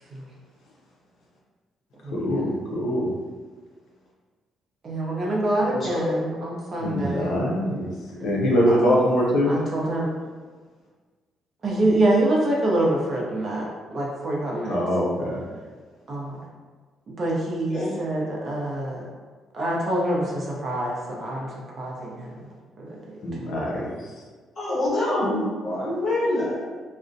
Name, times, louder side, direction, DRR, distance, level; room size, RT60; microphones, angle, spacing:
voice 1, 2.1-3.1 6.8-9.5 14.6-15.4 23.2-23.9, equal, 80° left, -4 dB, 0.5 m, -23 dB
voice 2, 4.8-7.4 8.7-8.8 9.5-10.1 11.6-13.7 13.9-14.8 16.1-16.4 17.1-19.1 19.5-21.5 21.8-22.3 22.8-23.0, right 1 dB, 40° right, -3 dB, 0.5 m, -25 dB
voice 3, 5.7-6.1 17.7-17.9 24.6-26.6, left 1 dB, 40° left, -9 dB, 1.1 m, -25 dB
2.4 x 2.0 x 2.5 m, 1.4 s
cardioid pair, 135°, 0 cm